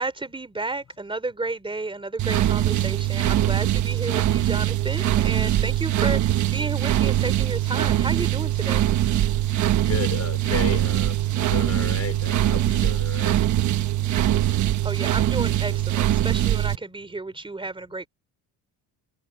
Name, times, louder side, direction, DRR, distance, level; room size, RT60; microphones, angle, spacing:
voice 1, 0.0-8.9 14.8-18.1, right 3 dB, 10° right, 3.1 m, -32 dB
sound 1, 2.2-16.7, right 12 dB, 45° right, 1.1 m, -22 dB
voice 2, 9.9-13.3, left 8 dB, 40° left, 4.8 m, -33 dB
cardioid pair, 135°, 41 cm